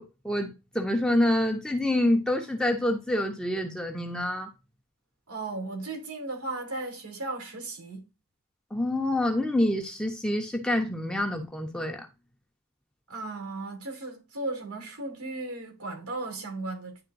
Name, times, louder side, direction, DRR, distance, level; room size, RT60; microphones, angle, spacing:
voice 1, 0.0-4.5 8.7-12.0, left 1 dB, 5° left, 0.9 m, -27 dB
voice 2, 5.3-8.1 13.1-17.0, right 2 dB, 85° right, 2.7 m, -36 dB
10.5 x 3.7 x 2.6 m
head